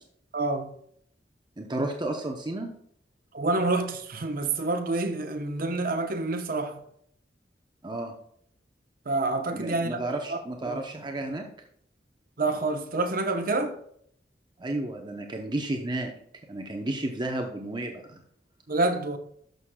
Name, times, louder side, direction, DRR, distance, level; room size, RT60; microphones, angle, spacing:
voice 1, 0.3-0.7 3.3-6.8 9.1-10.0 10.3-10.4 10.7-10.8 12.4-13.8 18.7-19.2, right 2 dB, 55° right, 0.9 m, -27 dB
voice 2, 1.6-2.7 7.8-8.1 9.5-11.4 14.6-16.1 16.5-18.2, right 2 dB, 25° right, 0.8 m, -32 dB
11.5 x 6.4 x 2.3 m
head